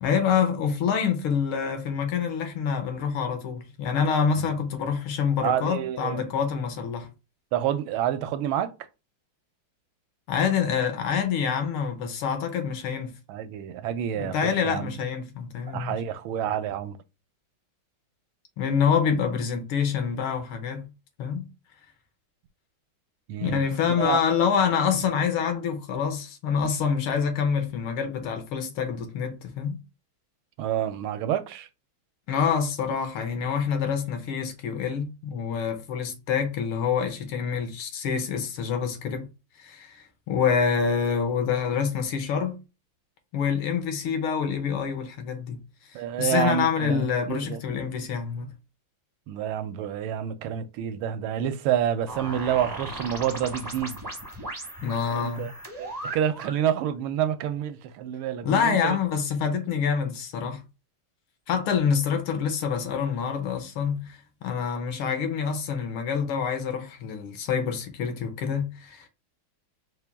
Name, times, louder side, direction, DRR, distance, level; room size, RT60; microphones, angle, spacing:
voice 1, 0.0-7.1 10.3-13.1 14.2-16.0 18.6-20.9 21.2-21.5 23.4-29.8 32.3-39.3 39.6-40.0 40.3-42.6 43.3-45.6 46.2-48.5 54.8-55.5 58.4-60.6 61.5-69.1, left 6 dB, 85° left, 1.7 m, -26 dB
voice 2, 5.4-6.3 7.5-8.7 13.3-15.0 15.7-17.0 23.3-23.6 24.0-24.2 30.6-31.7 45.9-47.6 49.3-54.0 55.1-55.5 55.8-59.0, right 10 dB, 80° right, 1.4 m, -28 dB
sound 1, 52.1-56.7, right 1 dB, 20° right, 0.5 m, -37 dB
4.4 x 2.2 x 3.3 m
omnidirectional pair, 2.3 m